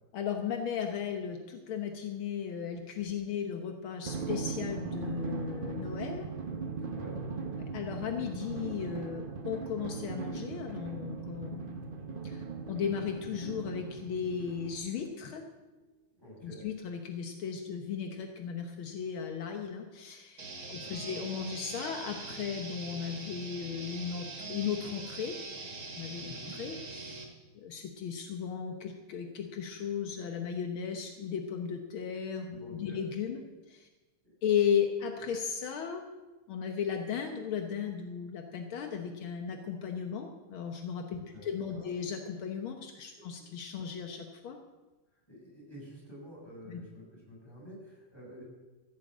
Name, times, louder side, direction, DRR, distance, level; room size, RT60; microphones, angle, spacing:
voice 1, 0.1-6.3 7.7-12.0 12.2-15.4 16.4-25.4 26.0-27.2 27.6-33.4 33.7-33.9 34.4-36.0 36.5-44.6 46.7-46.8, left 7 dB, 75° left, 4 dB, 1.9 m, -36 dB
Drum, 4.1-15.1, right 5 dB, 60° right, 0.5 m, -39 dB
voice 2, 6.7-7.3 16.2-16.7 20.7-21.2 26.3-26.5 32.6-33.0 34.2-34.3 41.3-41.9 43.1-43.5 45.3-48.4, equal, 10° left, -4 dB, 6.5 m, -49 dB
sound 1, 20.4-27.2, right 3 dB, 75° right, 3.1 m, -43 dB
15.0 x 7.5 x 8.4 m, 1.2 s
omnidirectional pair, 2.3 m